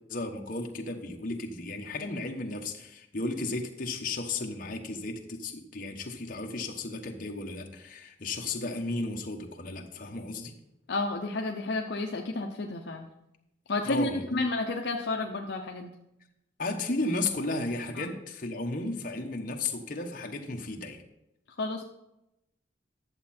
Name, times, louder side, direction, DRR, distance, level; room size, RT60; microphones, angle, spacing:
voice 1, 0.1-10.5 13.8-14.4 16.6-21.0, left 2 dB, 45° left, 2 dB, 1.1 m, -34 dB
voice 2, 10.9-13.1 13.7-15.9 18.0-18.1 21.6-21.8, left 2 dB, 65° left, 2 dB, 0.7 m, -31 dB
11.0 x 7.4 x 4.3 m, 0.89 s
head